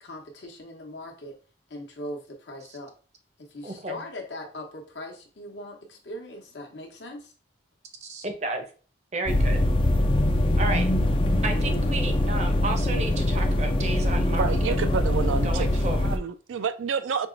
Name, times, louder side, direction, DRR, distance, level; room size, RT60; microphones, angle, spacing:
voice 1, 0.0-1.3 1.7-2.9 3.5-7.3 10.4-10.6, left 1 dB, 65° left, 0.9 m, -40 dB
voice 2, 3.6-4.0 8.0-8.6 9.1-9.6 10.6-10.9 11.4-14.7 15.4-16.0, right 2 dB, 35° right, 0.6 m, -32 dB
sound 1, 9.3-16.2, left 1 dB, 30° left, 0.3 m, -23 dB
voice 3, 14.4-15.7 16.0-17.3, right 6 dB, 85° right, 0.4 m, -29 dB
4.5 x 2.9 x 2.5 m
head